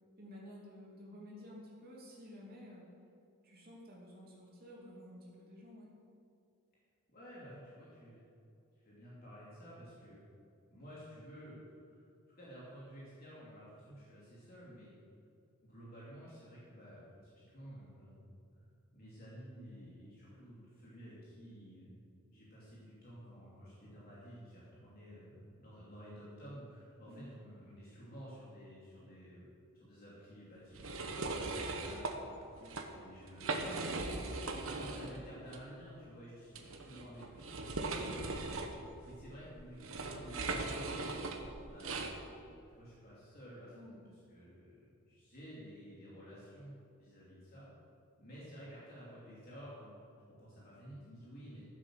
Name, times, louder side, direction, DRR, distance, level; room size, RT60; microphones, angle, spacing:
voice 1, 0.2-2.8 3.4-5.9 27.0-27.2 32.6-32.8 43.7-44.0, left 1 dB, 40° right, -4 dB, 3.0 m, -52 dB
voice 2, 7.1-8.2 8.8-10.2 10.7-11.6 11.9-12.1 12.3-14.9 15.6-17.1 17.4-18.3 18.9-21.9 22.3-32.4 32.7-38.5 39.0-41.0 41.7-42.1 42.7-43.8 44.3-44.7 45.1-47.7 48.2-50.0 50.3-51.6, equal, 40° left, -8 dB, 2.9 m, -52 dB
sound 1, 30.7-32.1 32.6-32.8 33.3-35.2 35.5-35.6 36.5-42.1, right 3 dB, 65° right, 1.2 m, -39 dB
14.5 x 7.6 x 6.5 m, 2.6 s
head